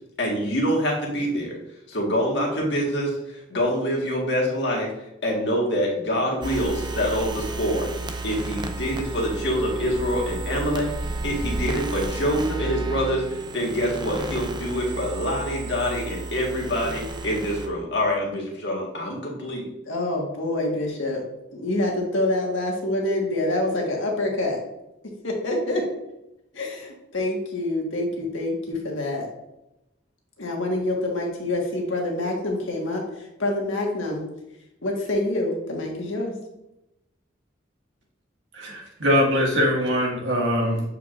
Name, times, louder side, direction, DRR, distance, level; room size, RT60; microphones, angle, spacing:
voice 1, 0.2-1.6 1.9-4.9 5.2-10.9 11.2-19.7, equal, 60° left, -2 dB, 1.7 m, -25 dB
sound 1, 6.4-17.7, right 2 dB, 20° right, 0.5 m, -32 dB
voice 2, 19.8-21.2 21.5-24.6 25.2-25.8 26.5-29.3 30.4-34.2 34.8-36.3, left 1 dB, 85° left, 0 dB, 1.5 m, -26 dB
voice 3, 38.5-40.9, equal, 75° right, -2 dB, 1.8 m, -22 dB
7.9 x 4.7 x 2.5 m, 0.89 s
head